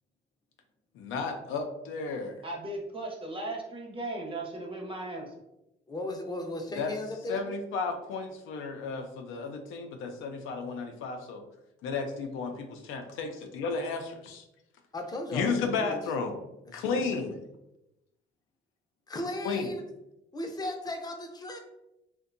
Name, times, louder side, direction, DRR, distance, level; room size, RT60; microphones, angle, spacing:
voice 1, 1.0-2.4 6.8-6.9 7.3-11.4 11.8-14.4 15.3-16.4 16.7-17.4 19.4-19.7, left 4 dB, 90° left, 5 dB, 0.4 m, -33 dB
voice 2, 2.4-5.3, right 2 dB, 25° right, 0 dB, 0.7 m, -37 dB
voice 3, 5.9-7.4 9.6-9.8 14.9-16.0 16.6-17.2 19.1-19.8 20.3-21.6, left 1 dB, 20° left, 3 dB, 0.5 m, -36 dB
2.6 x 2.2 x 2.5 m, 0.89 s
cardioid pair, 90°, 20 cm